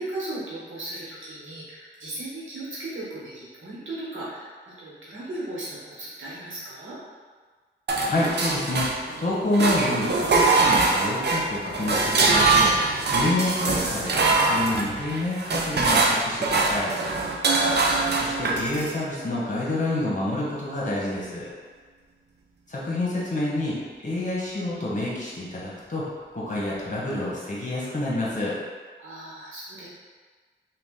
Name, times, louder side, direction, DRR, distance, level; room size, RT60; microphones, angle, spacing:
voice 1, 0.0-7.0 17.0-17.4 29.0-29.9, right 2 dB, 80° right, -8 dB, 1.1 m, -37 dB
sound 1, 7.9-9.2 9.5-19.0, right 3 dB, 55° right, 0.5 m, -23 dB
voice 2, 8.0-8.9 9.2-12.7 13.1-16.9 18.1-21.5 22.7-23.7 24.0-26.0 26.3-28.5, left 1 dB, 40° left, -6 dB, 1.1 m, -28 dB
2.8 x 2.4 x 3.6 m, 1.5 s
cardioid pair, 50°, 20 cm